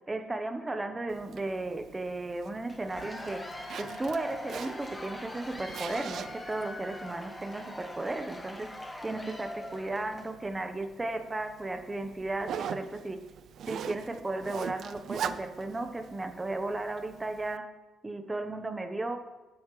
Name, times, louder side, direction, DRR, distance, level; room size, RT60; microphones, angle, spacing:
voice 1, 0.1-3.4 3.8-8.7 9.0-13.2 13.7-17.7 18.0-19.2, right 2 dB, 20° right, 7 dB, 1.0 m, -35 dB
Zipper (clothing), 1.1-17.6, right 8 dB, 70° right, 0.4 m, -43 dB
Cheering / Applause / Crowd, 2.7-10.3, left 1 dB, 15° left, 1.4 m, -42 dB
10.5 x 8.4 x 3.2 m, 1.1 s
cardioid pair, 90°, 0 cm